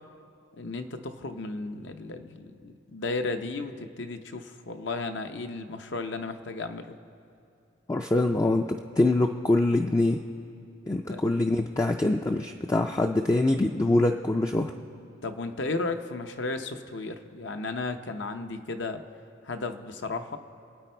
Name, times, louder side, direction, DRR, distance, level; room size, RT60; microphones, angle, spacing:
voice 1, 0.5-6.9 11.0-11.2 15.2-19.0 19.4-20.4, left 3 dB, 70° left, 7 dB, 0.8 m, -34 dB
voice 2, 7.9-10.2 10.9-14.7, left 2 dB, 15° left, 3 dB, 0.4 m, -24 dB
27.5 x 9.2 x 4.5 m, 2.7 s
head